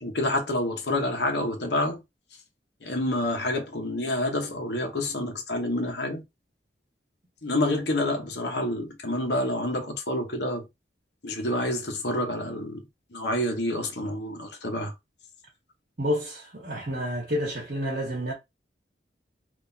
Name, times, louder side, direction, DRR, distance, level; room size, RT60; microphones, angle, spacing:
voice 1, 0.0-2.0 2.8-6.2 7.4-10.7 11.2-12.8 13.1-14.9, left 1 dB, 70° left, 1.0 m, -28 dB
voice 2, 16.0-18.3, equal, 55° right, 1.4 m, -29 dB
3.8 x 2.7 x 2.7 m
head